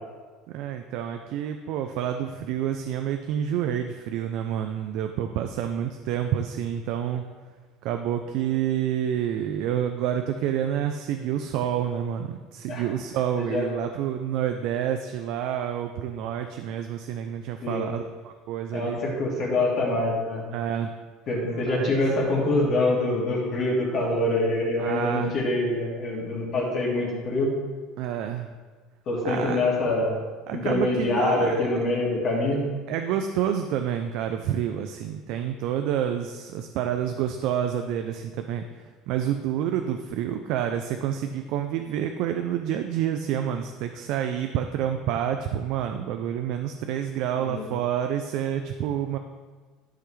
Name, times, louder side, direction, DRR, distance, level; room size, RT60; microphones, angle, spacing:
voice 1, 0.5-7.2 7.8-19.0 20.5-20.9 21.4-22.0 24.8-25.3 28.0-28.5 29.2-29.6 30.5-31.6 32.9-38.7 39.1-49.2, right 10 dB, 60° right, 6 dB, 0.5 m, -28 dB
voice 2, 18.7-20.4 21.3-27.5 29.1-30.1 30.5-32.6 47.4-47.7, left 2 dB, 40° left, -3 dB, 2.3 m, -25 dB
12.5 x 5.7 x 3.3 m, 1.4 s
cardioid pair, 150°, 0 cm